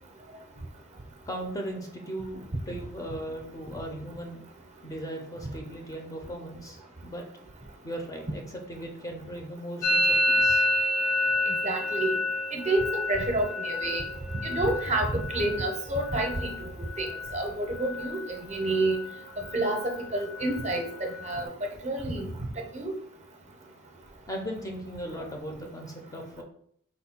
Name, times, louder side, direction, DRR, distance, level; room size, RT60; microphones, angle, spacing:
voice 1, 1.3-4.4 4.8-7.2 7.8-10.7 24.3-26.4, right 1 dB, 15° left, 2 dB, 0.4 m, -38 dB
Musical instrument, 9.8-17.5 17.7-18.3 18.6-19.2 19.4-21.4, left 1 dB, 70° left, 0.7 m, -29 dB
voice 2, 11.5-12.1 12.5-14.0 14.4-16.7 17.0-17.1 17.3-19.0 19.5-21.5 21.8-22.3 22.7-22.9, right 2 dB, 30° right, 3 dB, 0.6 m, -29 dB
4.2 x 2.2 x 4.2 m, 0.66 s
head